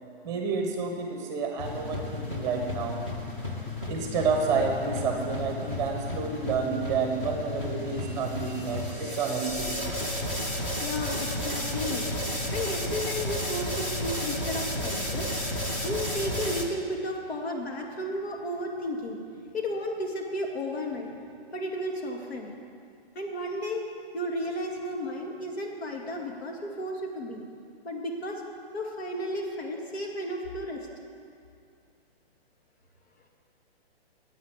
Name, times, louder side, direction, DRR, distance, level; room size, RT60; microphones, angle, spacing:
voice 1, 0.2-3.0 3.9-9.8, right 5 dB, 10° right, 3 dB, 0.9 m, -29 dB
sound 1, 1.6-16.6, left 1 dB, 15° left, 0.6 m, -32 dB
voice 2, 10.8-12.1 12.5-15.3 15.8-19.2 19.5-21.1 21.5-22.5 23.1-23.8 24.1-27.4 27.8-28.4 28.7-30.9, left 1 dB, 75° left, 1 dB, 2.5 m, -33 dB
9.3 x 8.7 x 9.2 m, 2.4 s
hypercardioid pair, 170°, 31 cm